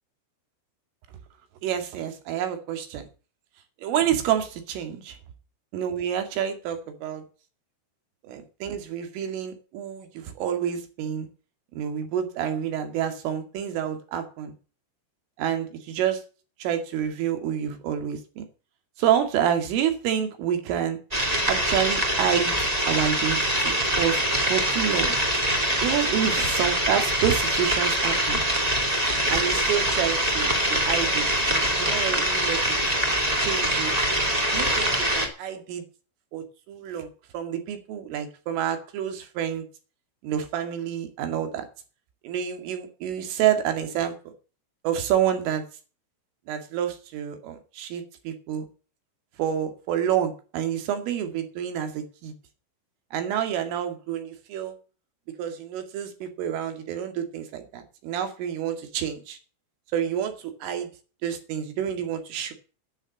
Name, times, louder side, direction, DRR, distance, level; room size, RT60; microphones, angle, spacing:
voice 1, 1.6-3.1 3.8-5.2 5.7-7.2 8.2-11.3 11.7-14.5 15.4-16.2 16.6-18.5 19.0-21.0 21.5-24.2 24.5-25.2 25.8-28.4 29.3-32.8 33.4-33.9 34.5-35.8 36.3-37.1 37.3-39.6 40.2-41.7 42.2-44.1 44.8-45.6 46.5-48.7 49.4-52.3 53.1-54.7 55.4-59.4 59.9-60.9 61.2-62.5, right 9 dB, 75° right, 7 dB, 4.8 m, -28 dB
sound 1, 21.1-35.3, right 1 dB, 20° right, 0.9 m, -24 dB
10.5 x 9.7 x 7.2 m, 0.36 s
omnidirectional pair, 5.9 m